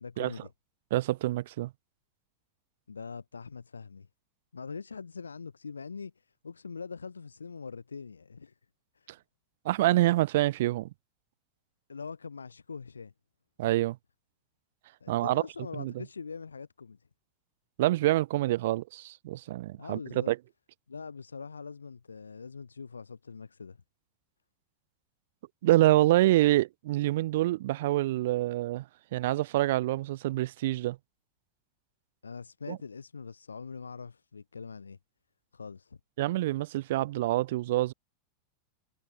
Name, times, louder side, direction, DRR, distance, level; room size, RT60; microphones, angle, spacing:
voice 1, 0.0-0.5 2.9-4.1 4.5-8.5 8.9-9.1 11.9-13.1 15.0-17.0 19.8-20.3 20.9-23.8 32.2-35.0 35.5-36.0, left 5 dB, 75° left, 1.3 m, -43 dB
voice 2, 0.9-1.7 9.6-10.9 13.6-14.0 15.1-15.4 15.8-15.9 17.8-20.4 25.6-28.8 29.1-31.0 32.7-32.8 36.2-37.9, right 16 dB, 55° right, 0.9 m, -26 dB
figure-of-eight pair, 90°, 0 cm